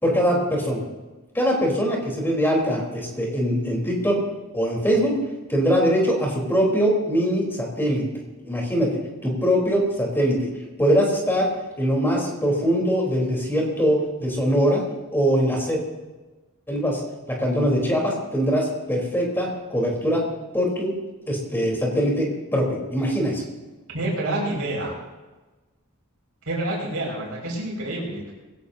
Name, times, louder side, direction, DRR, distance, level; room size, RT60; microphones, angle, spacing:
voice 1, 0.0-0.8 1.3-4.2 4.5-5.2 5.5-8.1 8.4-10.5 10.8-11.5 11.8-14.8 15.1-15.8 16.7-17.0 17.3-20.3 20.5-20.9 21.3-23.4, equal, 10° left, -2 dB, 4.1 m, -22 dB
voice 2, 23.9-24.9 26.5-28.3, right 1 dB, 70° right, -3 dB, 6.1 m, -28 dB
21.5 x 16.5 x 2.9 m, 1.2 s
head